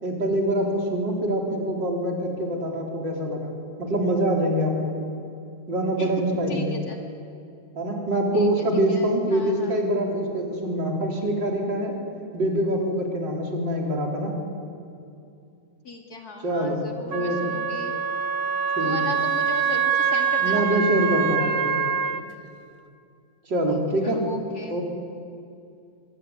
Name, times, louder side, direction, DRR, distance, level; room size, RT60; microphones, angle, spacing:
voice 1, 0.0-3.5 3.8-4.9 5.7-6.8 7.7-11.9 12.3-14.3 16.4-16.8 17.1-17.5 18.8-19.1 20.4-21.7 23.5-24.2 24.7-24.8, right 1 dB, 70° right, -1 dB, 4.9 m, -25 dB
voice 2, 6.5-7.0 8.3-9.7 15.8-17.9 18.8-20.8 24.0-24.8, left 3 dB, 55° left, 1 dB, 2.9 m, -38 dB
Wind instrument woodwind instrument, 17.1-22.2, right 6 dB, 45° right, 0.8 m, -24 dB
25.0 x 21.5 x 9.5 m, 2.5 s
omnidirectional pair, 2.0 m